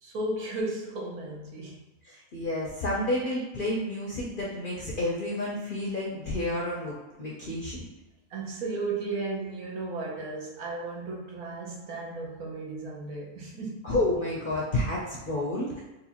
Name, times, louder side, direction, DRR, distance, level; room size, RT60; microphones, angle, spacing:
voice 1, 0.0-1.8 8.3-13.9, right 2 dB, 80° right, 1.3 m, -34 dB
voice 2, 2.0-7.8 13.8-15.8, left 1 dB, 55° left, 0.6 m, -30 dB
3.9 x 2.6 x 2.8 m
omnidirectional pair, 1.5 m